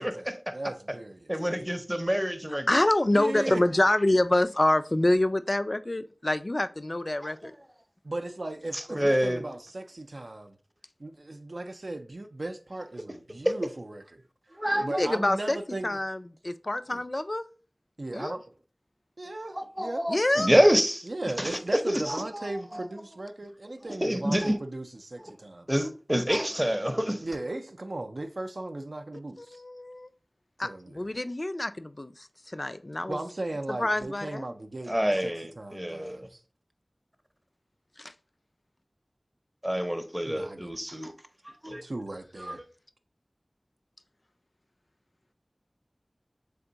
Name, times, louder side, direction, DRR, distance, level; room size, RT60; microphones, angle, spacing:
voice 1, 0.0-1.2 3.1-3.6 8.0-10.5 11.0-14.2 14.8-16.0 16.9-17.0 18.0-18.4 19.2-20.0 21.1-25.7 27.2-29.6 30.6-31.0 33.1-36.4 40.2-40.8 41.8-42.6, right 2 dB, 75° right, 0.4 m, -37 dB
voice 2, 1.3-2.7 8.7-9.4 13.4-13.5 14.6-14.9 18.2-18.3 19.5-21.1 21.4-22.9 24.0-24.6 25.2-25.3 25.7-27.3 34.9-36.2 39.6-41.1 41.6-41.8 42.4-42.6, equal, 15° right, 0.6 m, -27 dB
voice 3, 2.7-7.5 14.7-15.6 15.8-17.5 18.1-18.4 20.1-20.5 29.4-30.1 30.6-33.2 33.8-34.5 38.0-38.1, left 1 dB, 45° left, 0.3 m, -26 dB
3.6 x 3.4 x 3.9 m
wide cardioid pair, 45°, 0 cm